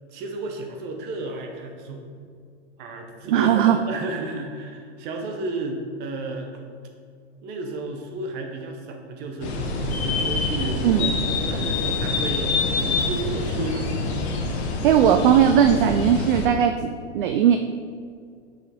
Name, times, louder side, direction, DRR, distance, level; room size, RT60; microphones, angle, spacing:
voice 1, 0.1-2.1 2.8-6.6 7.4-9.6 10.0-13.9, right 2 dB, 25° right, 3 dB, 0.9 m, -32 dB
voice 2, 3.3-3.8 10.8-11.1 14.8-17.6, right 9 dB, 45° right, 6 dB, 0.4 m, -18 dB
sound 1, 9.4-16.5, left 3 dB, 60° left, 1.3 m, -26 dB
7.2 x 6.3 x 3.5 m, 2.2 s
hypercardioid pair, 140°, 37 cm